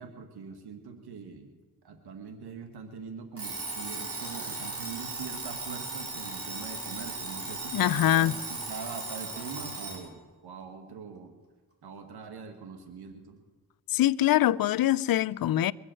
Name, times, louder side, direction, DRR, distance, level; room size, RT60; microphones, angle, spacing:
voice 1, 0.0-1.5 1.8-11.4 11.8-13.4, right 5 dB, 80° right, 1.7 m, -43 dB
Alarm, 3.4-10.1, right 2 dB, 35° right, 5.1 m, -37 dB
voice 2, 7.7-8.4 13.9-15.7, left 13 dB, 65° left, 0.5 m, -24 dB
22.5 x 8.1 x 7.7 m
cardioid pair, 65°, 39 cm